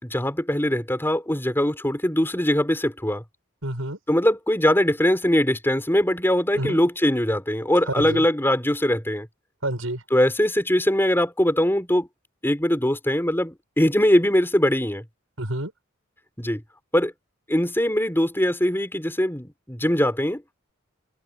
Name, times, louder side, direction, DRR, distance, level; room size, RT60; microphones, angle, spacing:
voice 1, 0.0-3.2 4.1-9.3 10.1-12.1 12.4-15.0 16.4-16.6 16.9-17.1 17.5-20.4, left 1 dB, 10° left, 4.3 m, -21 dB
voice 2, 3.6-4.0 6.6-6.8 7.9-8.2 9.6-10.0 15.4-15.7, right 1 dB, 85° right, 7.7 m, -28 dB
head